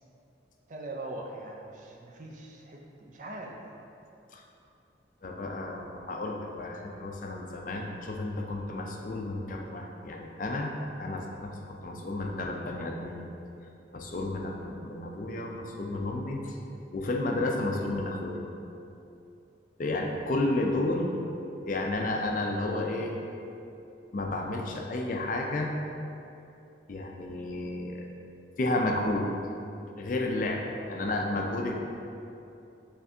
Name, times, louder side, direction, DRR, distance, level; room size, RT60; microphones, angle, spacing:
voice 1, 0.7-3.6 31.0-31.2, right 2 dB, 40° right, 0 dB, 0.4 m, -42 dB
voice 2, 5.2-10.7 11.0-13.2 13.9-16.6 16.9-18.4 19.8-21.2 21.6-23.1 24.1-25.7 26.9-28.0 28.6-29.3 30.0-31.8, left 2 dB, 45° left, 1 dB, 0.4 m, -32 dB
5.8 x 3.3 x 2.7 m, 2.8 s
head